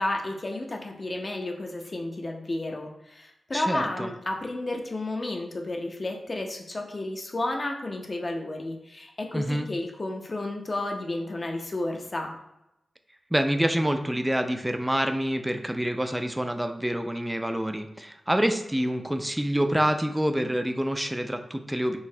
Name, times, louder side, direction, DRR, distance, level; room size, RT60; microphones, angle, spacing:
voice 1, 0.0-12.3, left 2 dB, 45° left, 2 dB, 0.5 m, -32 dB
voice 2, 3.5-4.1 9.3-9.7 13.3-22.0, equal, 10° right, 7 dB, 0.3 m, -27 dB
3.9 x 2.0 x 2.7 m, 0.87 s
cardioid pair, 50°, 0 cm